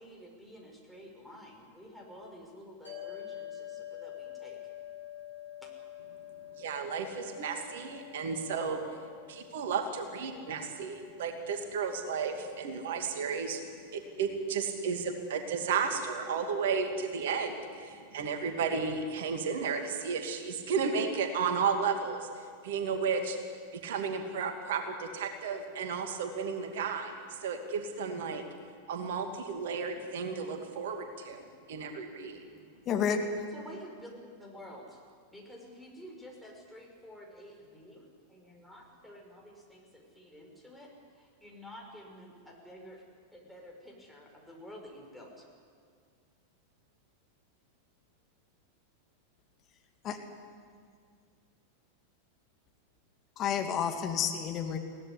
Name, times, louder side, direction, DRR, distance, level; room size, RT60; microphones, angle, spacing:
voice 1, 0.0-4.7 5.6-5.7 33.5-35.0 35.3-43.0 43.3-45.5, equal, ahead, -1 dB, 5.7 m, -50 dB
sound 1, 2.8-15.3, left 11 dB, 80° left, 7.3 m, -48 dB
voice 2, 6.6-9.0 9.3-13.6 13.9-23.4 23.7-28.4 28.9-32.4, right 5 dB, 55° right, 6 dB, 2.4 m, -33 dB
voice 3, 32.9-33.3 50.1-50.2 53.4-54.8, left 7 dB, 30° left, 4 dB, 2.5 m, -30 dB
22.5 x 17.0 x 9.9 m, 2.1 s
figure-of-eight pair, 90°, 0 cm